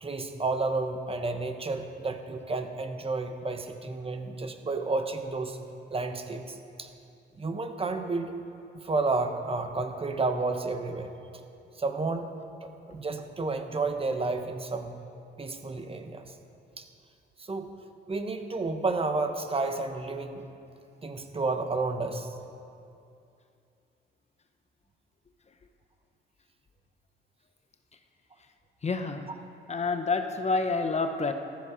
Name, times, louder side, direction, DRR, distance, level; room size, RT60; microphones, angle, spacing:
voice 1, 0.0-5.6 5.9-6.9 7.4-8.3 8.7-11.1 11.8-12.3 12.6-14.9 15.4-16.3 16.8-16.9 17.4-17.7 18.1-20.4 21.0-22.3, right 3 dB, 30° right, 6 dB, 1.2 m, -31 dB
voice 2, 28.8-29.4 29.7-31.3, left 3 dB, 35° left, 7 dB, 0.9 m, -28 dB
14.5 x 12.5 x 5.0 m, 2.6 s
cardioid pair, 90°, 20 cm